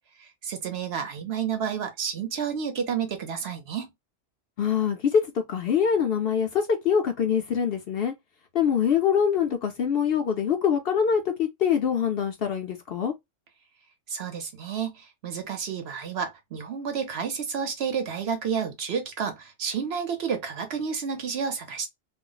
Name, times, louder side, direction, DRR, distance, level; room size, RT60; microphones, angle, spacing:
voice 1, 0.2-3.9 14.1-21.9, right 7 dB, 60° right, 0.8 m, -30 dB
voice 2, 4.6-8.1 8.5-13.1, left 7 dB, 60° left, 0.7 m, -24 dB
2.4 x 2.0 x 3.7 m
omnidirectional pair, 1.3 m